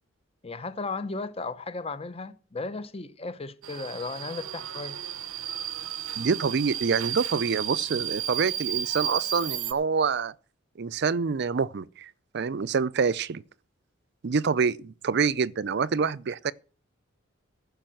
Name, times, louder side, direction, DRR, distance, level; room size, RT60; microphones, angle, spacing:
voice 1, 0.4-5.0, left 3 dB, 30° left, 0.8 m, -35 dB
Subway metro underground, 3.6-9.7, right 10 dB, 85° right, 0.8 m, -33 dB
voice 2, 6.2-10.3 10.8-13.4 14.2-16.5, right 5 dB, 55° right, 0.5 m, -26 dB
15.0 x 5.6 x 7.7 m
head